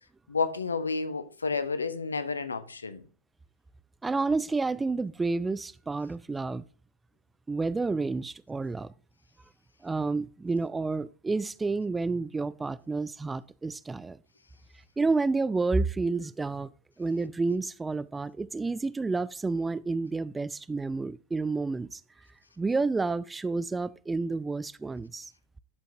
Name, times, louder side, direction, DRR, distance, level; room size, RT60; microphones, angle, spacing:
voice 1, 0.3-3.0, left 4 dB, 75° left, 0.8 m, -30 dB
voice 2, 4.0-6.6 7.5-8.9 9.8-14.2 15.0-16.7 17.0-22.0 22.6-25.3, right 3 dB, 10° right, 0.3 m, -30 dB
11.5 x 5.2 x 2.6 m
figure-of-eight pair, 90°, 0 cm